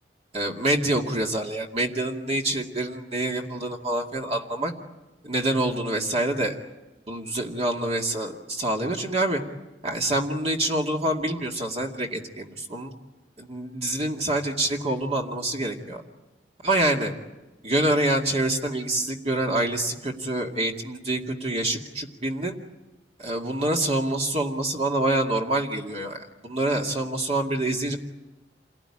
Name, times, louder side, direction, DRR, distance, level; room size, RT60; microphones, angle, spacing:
voice 1, 0.3-4.7 5.2-6.6 7.1-9.4 9.8-12.9 13.4-16.0 16.6-17.1 17.6-22.6 23.2-28.0, right 1 dB, 35° right, 1 dB, 2.3 m, -26 dB
28.5 x 18.0 x 10.0 m, 1.1 s
head